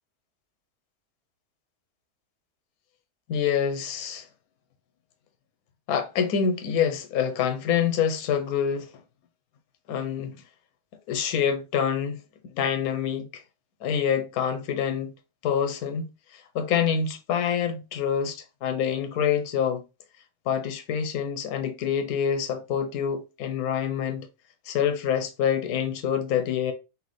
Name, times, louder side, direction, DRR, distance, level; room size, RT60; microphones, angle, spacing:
voice 1, 3.3-4.2 5.9-8.9 9.9-10.4 11.1-12.2 12.5-13.4 13.8-15.1 15.4-19.8 20.5-24.3 24.7-26.7, left 8 dB, 75° left, 1.1 m, -26 dB
4.1 x 3.2 x 3.1 m
omnidirectional pair, 1.6 m